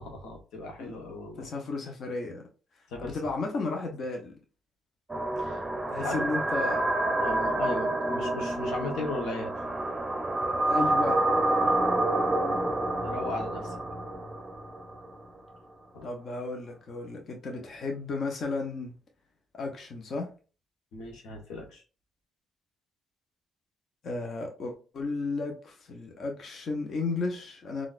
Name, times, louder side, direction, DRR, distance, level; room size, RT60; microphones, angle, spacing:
voice 1, 0.0-1.5 2.9-3.2 5.4-5.6 6.0-6.2 6.5-6.6 7.2-9.5 11.6-11.8 12.5-13.8 15.9-16.1 20.9-21.8, left 2 dB, 90° left, 0.9 m, -37 dB
voice 2, 1.4-2.4 3.0-4.3 5.9-6.9 8.0-8.3 10.7-11.2 16.0-18.9 19.6-20.3 24.0-27.9, left 3 dB, 55° left, 0.8 m, -34 dB
sound 1, 5.1-15.2, right 2 dB, 15° right, 0.7 m, -28 dB
3.8 x 2.4 x 2.4 m
cardioid pair, 90°, 0 cm